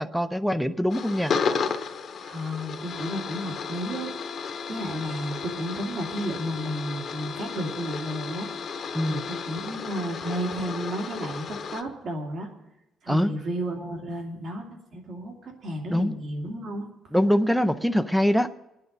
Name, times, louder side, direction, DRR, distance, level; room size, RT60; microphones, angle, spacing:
voice 1, 0.0-1.3 8.9-9.2 13.1-13.3 15.9-16.1 17.1-18.5, equal, ahead, 12 dB, 0.5 m, -23 dB
sound 1, 0.9-11.8, left 5 dB, 45° left, 1.0 m, -33 dB
voice 2, 2.2-4.1 4.7-8.5 9.1-12.5 13.0-16.9, equal, 55° right, 1 dB, 2.5 m, -32 dB
25.5 x 9.9 x 4.0 m, 0.92 s
cardioid pair, 130°, 0 cm